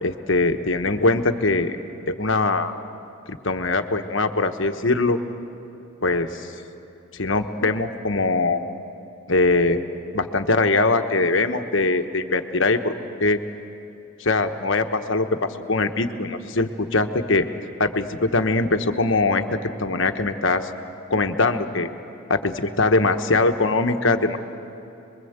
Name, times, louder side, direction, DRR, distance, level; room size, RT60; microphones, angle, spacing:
voice 1, 0.0-1.8 2.1-2.7 3.3-5.2 6.0-6.5 7.1-8.6 9.3-9.8 10.1-12.9 13.2-13.4 14.2-17.5 17.8-20.7 21.1-21.9 22.3-24.4, left 3 dB, 65° left, 7 dB, 1.2 m, -22 dB
27.5 x 22.0 x 8.1 m, 2.9 s
head